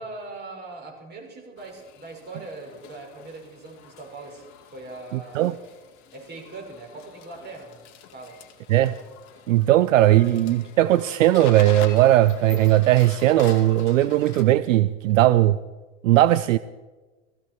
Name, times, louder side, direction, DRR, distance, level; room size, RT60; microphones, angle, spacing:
voice 1, 0.0-4.4 4.7-5.6 6.1-7.9 8.1-8.4 9.4-9.8, right 3 dB, 25° right, 5.5 m, -41 dB
sound 1, 1.6-14.4, left 8 dB, 45° left, 2.3 m, -44 dB
voice 2, 5.1-5.5 8.7-8.9 9.5-15.6 16.0-16.6, right 14 dB, 70° right, 0.6 m, -18 dB
16.5 x 15.5 x 4.5 m
hypercardioid pair, 100°, 40 cm